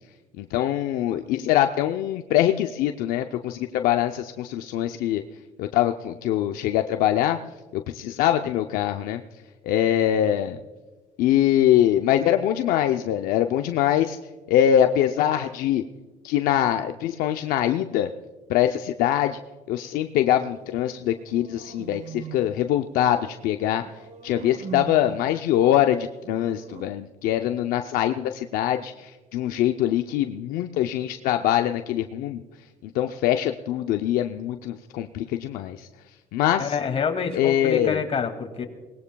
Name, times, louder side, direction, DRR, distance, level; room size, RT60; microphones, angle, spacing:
voice 1, 0.4-5.2 5.6-7.4 7.7-9.2 9.6-10.6 11.2-14.2 14.5-15.8 16.2-18.1 18.5-19.4 19.7-23.8 24.2-32.4 32.8-35.9 36.3-36.8 37.3-38.0, left 11 dB, 80° left, 6 dB, 0.6 m, -23 dB
sound 1, 21.0-22.6 23.8-25.3 26.2-26.9, right 8 dB, 55° right, 1.0 m, -40 dB
voice 2, 36.6-38.6, left 6 dB, 40° left, 5 dB, 2.2 m, -27 dB
24.0 x 19.0 x 2.3 m, 1.3 s
cardioid pair, 90°, 15 cm